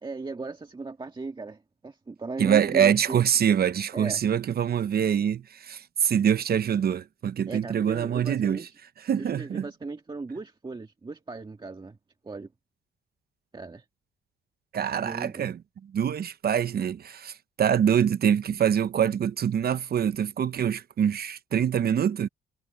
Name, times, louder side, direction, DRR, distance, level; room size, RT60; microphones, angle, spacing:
voice 1, 0.0-3.5 3.9-4.2 7.5-8.7 9.2-12.0 12.2-12.5 13.5-13.8 15.0-15.5, right 3 dB, 25° right, 1.7 m, -37 dB
voice 2, 2.4-8.7 9.0-9.7 14.7-15.6 15.9-22.3, right 8 dB, 50° right, 0.9 m, -25 dB
cardioid pair, 90°, 20 cm